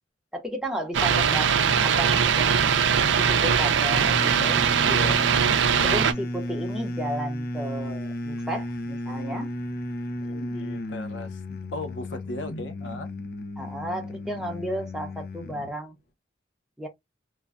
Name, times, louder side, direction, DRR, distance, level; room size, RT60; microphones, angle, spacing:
voice 1, 0.3-1.5 1.8-2.7 3.1-4.6 5.8-9.5 13.6-16.0 16.8-16.9, equal, 5° right, 0.7 m, -33 dB
sound 1, 0.9-6.1, right 7 dB, 80° right, 0.4 m, -21 dB
sound 2, 3.8-15.8, left 1 dB, 55° left, 0.5 m, -34 dB
voice 2, 4.5-5.3 10.2-13.1, left 2 dB, 90° left, 0.8 m, -37 dB
3.2 x 2.2 x 2.4 m
head